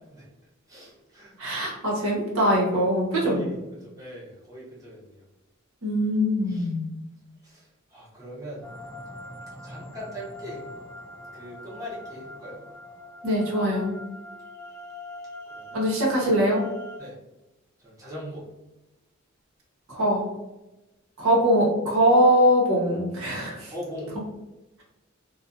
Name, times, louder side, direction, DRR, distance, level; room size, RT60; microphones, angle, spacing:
voice 1, 0.7-1.6 3.2-5.2 6.5-6.7 7.4-8.6 9.6-10.6 11.3-12.6 15.5-15.9 17.0-17.2 17.8-18.4 23.7-24.1, equal, 15° right, -7 dB, 0.7 m, -40 dB
voice 2, 1.4-3.4 5.8-6.9 13.2-13.9 15.7-16.6 19.9-20.2 21.2-23.7, equal, 80° right, -4 dB, 0.9 m, -22 dB
sound 1, 8.6-17.0, left 1 dB, 10° left, 0.3 m, -42 dB
2.4 x 2.4 x 2.5 m, 1.0 s
head